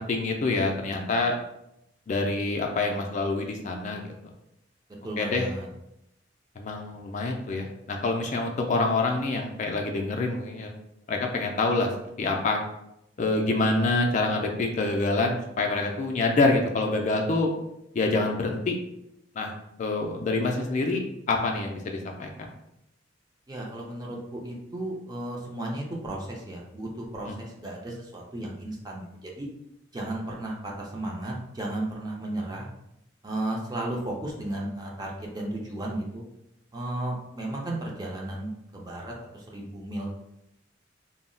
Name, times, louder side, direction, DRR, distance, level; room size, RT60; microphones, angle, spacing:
voice 1, 0.0-1.4 2.1-4.1 5.2-5.5 6.6-10.7 11.1-11.9 12.2-12.6 13.2-17.5 17.9-18.8 19.4-19.5 19.8-22.3, left 3 dB, 40° left, 2 dB, 0.3 m, -26 dB
voice 2, 5.0-5.7 23.5-29.5 29.9-32.7 33.2-36.3 36.7-40.1, right 1 dB, 20° right, -1 dB, 0.5 m, -34 dB
2.2 x 2.0 x 3.7 m, 0.83 s
head